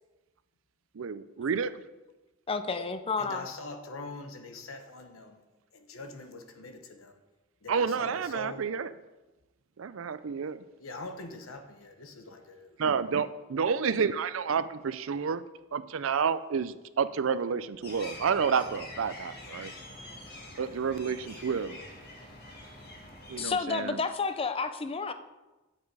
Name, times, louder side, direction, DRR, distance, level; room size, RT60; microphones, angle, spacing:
voice 1, 0.9-1.7 7.7-8.9 9.8-10.6 12.8-15.4 15.7-19.7 20.6-21.8 23.3-24.0, right 6 dB, 70° right, 14 dB, 0.5 m, -30 dB
voice 2, 2.5-3.5 23.4-25.1, left 4 dB, 30° left, 10 dB, 0.5 m, -31 dB
voice 3, 3.2-5.4 5.7-7.2 7.6-8.7 10.8-12.8, left 2 dB, 85° left, 7 dB, 1.0 m, -43 dB
sound 1, 17.8-23.5, left 1 dB, 50° left, 2.1 m, -45 dB
8.3 x 7.3 x 4.8 m, 1.1 s
head